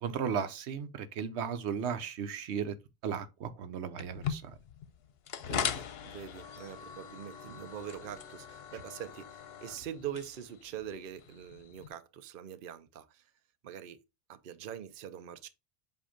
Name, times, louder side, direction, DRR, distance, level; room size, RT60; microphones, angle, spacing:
voice 1, 0.0-2.7 3.0-4.5, right 7 dB, 90° right, 1.0 m, -35 dB
sound 1, 4.0-11.9, left 8 dB, 70° left, 0.9 m, -40 dB
voice 2, 5.4-13.2 13.6-14.0 14.3-15.5, right 9 dB, 60° right, 0.8 m, -43 dB
7.6 x 2.7 x 5.0 m
omnidirectional pair, 1.1 m